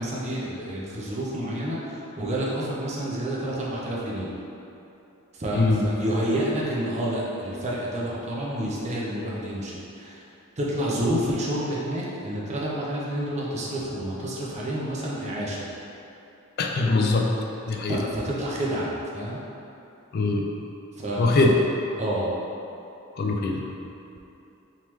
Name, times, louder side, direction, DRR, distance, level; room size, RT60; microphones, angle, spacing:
voice 1, 0.0-4.3 5.3-10.2 10.6-15.6 17.9-19.4 21.0-21.6 22.0-22.3, right 1 dB, 35° right, -5 dB, 0.6 m, -29 dB
voice 2, 5.5-5.8 16.6-17.3 17.7-18.0 20.1-20.5 21.2-21.5 23.2-23.7, left 3 dB, 50° left, 0 dB, 0.3 m, -22 dB
3.6 x 3.1 x 3.0 m, 2.8 s
head